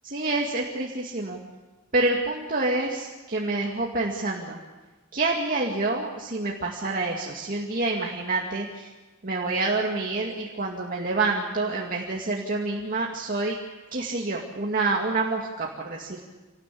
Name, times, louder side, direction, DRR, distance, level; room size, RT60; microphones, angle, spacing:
voice 1, 0.0-1.4 1.9-4.6 5.1-8.9 9.2-13.6 13.9-16.2, right 2 dB, 40° right, -1 dB, 2.4 m, -27 dB
27.0 x 19.0 x 8.6 m, 1.2 s
head